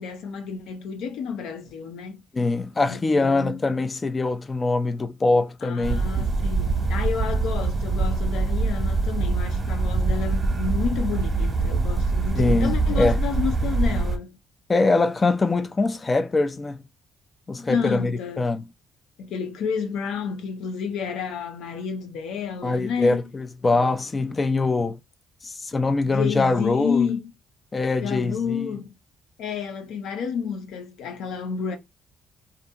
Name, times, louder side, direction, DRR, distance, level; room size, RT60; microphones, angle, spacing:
voice 1, 0.0-2.2 2.9-3.6 5.6-14.4 17.7-18.5 19.2-23.2 26.0-27.3 28.0-28.9 29.4-31.8, left 6 dB, 85° left, 0.6 m, -30 dB
voice 2, 2.3-6.3 12.3-13.2 14.7-16.8 17.5-18.6 22.6-25.0 25.4-27.1 27.7-28.7, left 3 dB, 30° left, 0.3 m, -23 dB
sound 1, 5.8-14.2, right 3 dB, 30° right, 0.9 m, -24 dB
2.7 x 2.5 x 2.2 m
cardioid pair, 90°, 0 cm